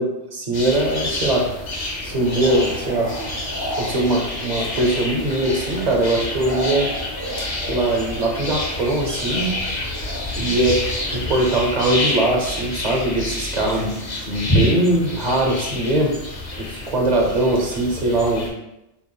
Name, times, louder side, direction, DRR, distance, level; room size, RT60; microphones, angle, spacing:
voice 1, 0.0-1.5 2.0-3.1 3.8-6.9 7.7-9.5 10.4-10.8 11.1-13.9 14.3-16.1 16.6-18.5, right 1 dB, 45° right, 0 dB, 0.7 m, -21 dB
sound 1, 0.5-18.5, left 1 dB, 35° left, 0.9 m, -28 dB
sound 2, 2.1-11.6, equal, 70° right, 1.0 m, -34 dB
6.9 x 2.4 x 2.3 m, 0.88 s
omnidirectional pair, 1.1 m